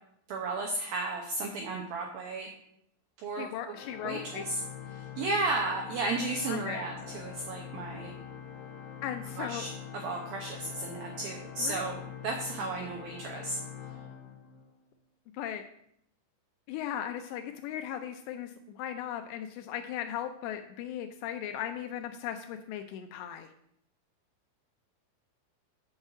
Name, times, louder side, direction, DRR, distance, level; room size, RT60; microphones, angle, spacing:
voice 1, 0.3-2.5 3.2-3.8 4.0-4.6 4.9-8.1 9.4-9.7 9.9-13.6, right 3 dB, 80° right, 1 dB, 2.1 m, -34 dB
voice 2, 3.4-4.4 6.5-6.8 9.0-9.7 11.6-11.8 15.3-15.6 16.7-23.5, left 10 dB, 90° left, 7 dB, 2.4 m, -37 dB
Organ, 3.7-14.9, left 8 dB, 70° left, 2.2 m, -44 dB
6.4 x 6.3 x 7.3 m, 0.73 s
omnidirectional pair, 5.6 m